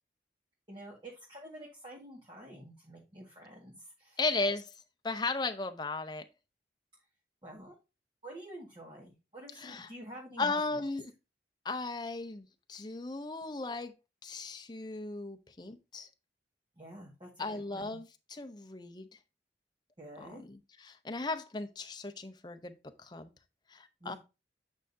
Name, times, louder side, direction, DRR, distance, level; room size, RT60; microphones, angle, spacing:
voice 1, 0.7-4.2 7.4-7.7 8.2-10.6 16.8-18.0 20.0-20.4 24.0-24.2, right 1 dB, 25° right, 1.7 m, -48 dB
voice 2, 4.2-4.7 5.0-6.2 9.6-9.9 10.4-11.1 11.6-13.9 14.2-16.1 17.4-19.1 20.2-23.3 23.7-24.2, left 3 dB, 25° left, 0.6 m, -36 dB
8.8 x 5.6 x 2.7 m
head